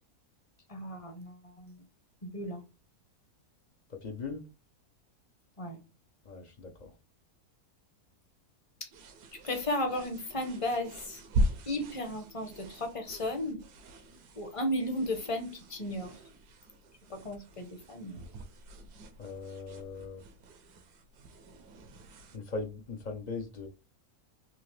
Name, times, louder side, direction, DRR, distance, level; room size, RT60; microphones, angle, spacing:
voice 1, 0.7-1.8 2.2-2.6 5.6-5.8 8.8-8.9 9.3-11.2 11.7-13.6 14.4-16.1 17.1-18.2, left 1 dB, 35° left, 0.5 m, -34 dB
voice 2, 3.9-4.4 6.3-6.9 19.2-20.2 22.3-23.7, left 4 dB, 85° left, 0.3 m, -39 dB
sound 1, 8.9-22.4, right 1 dB, 85° right, 1.3 m, -40 dB
4.0 x 2.7 x 3.1 m
omnidirectional pair, 1.6 m